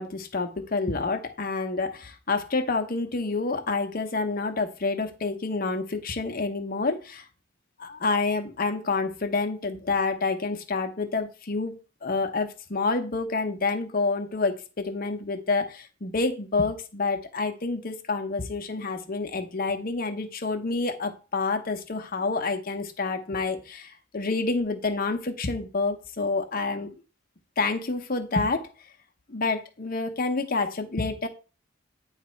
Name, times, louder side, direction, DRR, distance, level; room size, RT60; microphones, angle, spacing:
voice 1, 0.0-7.2 7.8-26.9 27.6-28.7 29.3-31.3, left 3 dB, 50° left, 0.9 m, -28 dB
8.4 x 3.3 x 4.4 m
head